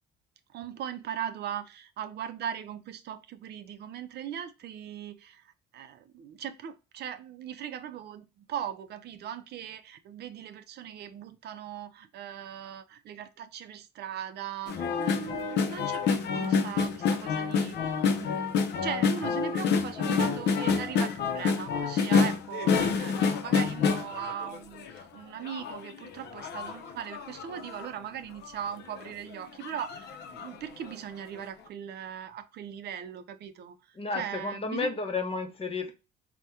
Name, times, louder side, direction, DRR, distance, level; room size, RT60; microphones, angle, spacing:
voice 1, 0.5-5.4 5.7-17.8 18.2-33.8 34.1-34.9, right 9 dB, 65° right, 0.4 m, -39 dB
sound 1, 14.7-25.0 25.4-27.9 28.4-28.5 28.8-29.1 29.6-30.6 30.9-31.0, left 5 dB, 65° left, 0.5 m, -28 dB
voice 2, 33.9-35.9, left 4 dB, 30° left, 0.7 m, -32 dB
2.8 x 2.1 x 3.3 m
cardioid pair, 100°, 19 cm